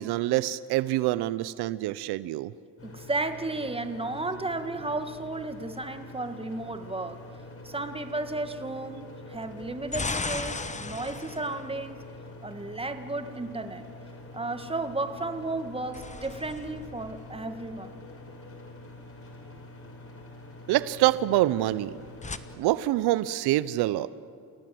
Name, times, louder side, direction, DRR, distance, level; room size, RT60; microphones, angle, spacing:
voice 1, 0.0-2.5 20.7-22.0 22.6-24.1, right 15 dB, 85° right, 17 dB, 0.7 m, -26 dB
sound 1, 2.8-22.6, left 2 dB, 35° left, 4.7 m, -45 dB
voice 2, 2.8-7.2 7.6-12.0 12.4-13.9 14.3-18.0, right 2 dB, 15° right, 8 dB, 1.8 m, -33 dB
sound 2, 4.8-5.8 9.4-12.7 15.6-18.0 21.8-22.4, left 3 dB, 20° left, 1.2 m, -38 dB
29.0 x 17.0 x 7.7 m, 2.3 s
cardioid pair, 80°, 38 cm